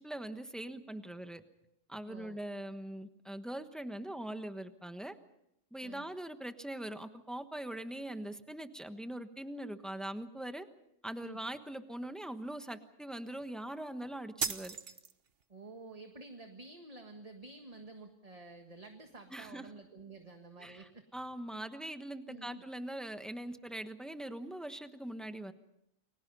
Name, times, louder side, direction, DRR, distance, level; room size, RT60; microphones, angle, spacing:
voice 1, 0.0-1.4 1.9-5.1 5.7-10.7 11.0-14.7 19.3-19.6 20.6-25.5, right 1 dB, ahead, 8 dB, 1.1 m, -42 dB
voice 2, 2.1-2.4 5.8-6.1 11.2-11.4 15.5-21.0 22.3-22.6, right 3 dB, 30° right, 4 dB, 1.7 m, -50 dB
sound 1, 14.4-15.4, right 6 dB, 50° right, 1.2 m, -37 dB
30.0 x 22.5 x 5.5 m, 0.80 s
omnidirectional pair, 1.3 m